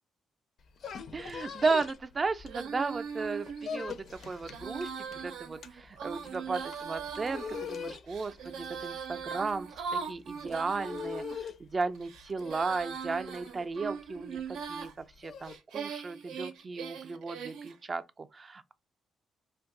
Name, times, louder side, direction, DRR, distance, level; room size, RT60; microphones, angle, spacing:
sound 1, 0.6-2.9 3.2-15.6, left 6 dB, 60° left, 0.5 m, -43 dB
voice 1, 1.1-18.7, right 4 dB, 35° right, 0.4 m, -35 dB
Female singing, 2.5-11.4 12.0-14.9 15.5-17.8, right 6 dB, 85° right, 0.6 m, -40 dB
2.5 x 2.3 x 3.7 m
cardioid pair, 90°, 0 cm